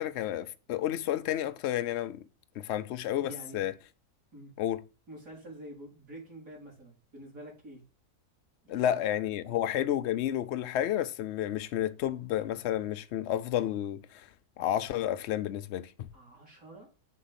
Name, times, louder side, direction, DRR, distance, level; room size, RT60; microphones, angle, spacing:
voice 1, 0.0-2.2 2.6-3.7 4.6-4.8 8.7-14.3 14.6-16.1, left 11 dB, 80° left, 0.6 m, -31 dB
voice 2, 3.2-3.6 4.3-4.5 5.1-7.8 8.7-8.9 9.4-9.6 16.1-16.9, right 1 dB, 55° right, 3.9 m, -47 dB
6.5 x 4.2 x 5.6 m
omnidirectional pair, 1.7 m